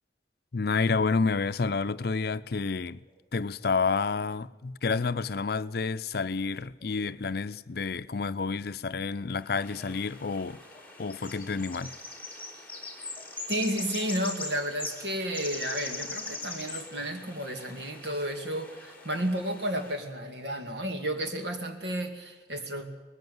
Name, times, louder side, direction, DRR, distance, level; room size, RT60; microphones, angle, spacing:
voice 1, 0.5-3.0 3.3-10.6 11.0-11.9, left 4 dB, 60° left, 0.6 m, -29 dB
sound 1, 3.0-3.1 4.0-4.1 5.5-5.8 6.8-6.9 7.7-8.0 8.9-9.2 9.8-10.0 10.7-10.8 11.4-11.6 12.4-12.5 13.1-13.3 14.0-14.1 14.9-15.0 15.8-15.9 16.8-16.9 17.4-17.5, left 2 dB, 25° left, 5.4 m, -58 dB
sound 2, 9.5-20.0, left 3 dB, 10° left, 3.6 m, -41 dB
voice 2, 13.5-22.9, right 1 dB, 75° right, 2.6 m, -32 dB
19.5 x 15.5 x 9.4 m
head